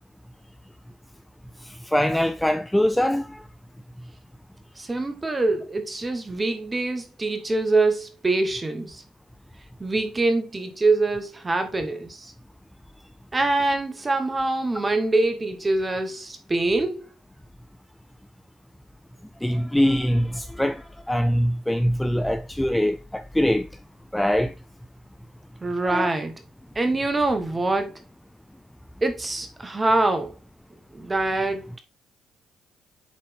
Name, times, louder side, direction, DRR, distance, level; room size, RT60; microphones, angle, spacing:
voice 1, 1.9-3.2 19.4-20.8 21.1-23.7 24.1-24.5 25.9-26.1, equal, 5° left, 0.6 m, -22 dB
voice 2, 4.8-9.0 9.8-12.3 13.3-17.1 25.6-26.3 26.8-27.9 29.0-30.3 30.9-31.8, right 2 dB, 25° right, 1.7 m, -24 dB
7.6 x 4.2 x 3.6 m
supercardioid pair, 65°, 0 cm